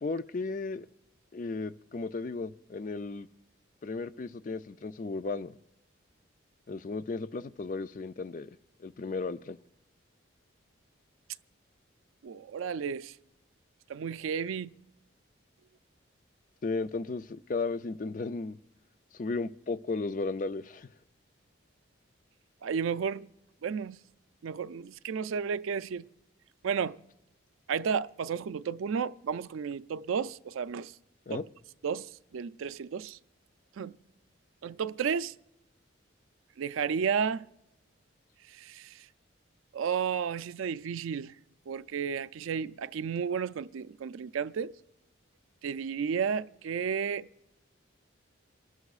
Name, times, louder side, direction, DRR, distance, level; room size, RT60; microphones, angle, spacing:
voice 1, 0.0-0.9 1.3-3.3 3.8-5.5 6.7-8.5 8.8-9.6 16.6-18.6 19.1-20.9 31.3-31.4, left 3 dB, 40° left, 0.4 m, -35 dB
voice 2, 12.2-13.1 13.9-14.7 22.6-23.3 23.6-24.0 24.4-26.1 26.6-27.0 27.7-30.9 31.3-31.4 31.8-33.2 33.8-33.9 34.6-35.3 36.6-37.4 38.5-39.1 39.7-41.3 41.7-44.7 45.6-47.3, right 6 dB, 90° right, 0.4 m, -32 dB
28.5 x 13.0 x 2.4 m
head